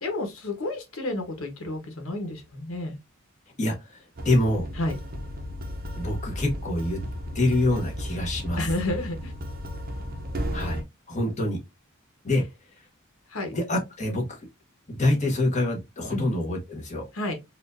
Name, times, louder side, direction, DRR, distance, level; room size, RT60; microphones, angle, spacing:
voice 1, 0.0-3.0 4.7-5.0 8.6-9.3 13.3-13.6 16.1-16.3 17.1-17.4, left 2 dB, 90° left, 1.2 m, -30 dB
voice 2, 3.6-4.0 4.2-4.7 6.0-7.0 7.3-8.6 10.5-10.8 11.1-11.6 12.2-12.4 13.5-14.3 14.9-17.0, left 1 dB, 35° left, 1.2 m, -25 dB
sound 1, 4.2-10.8, equal, 45° right, 0.7 m, -34 dB
4.3 x 2.6 x 2.6 m
head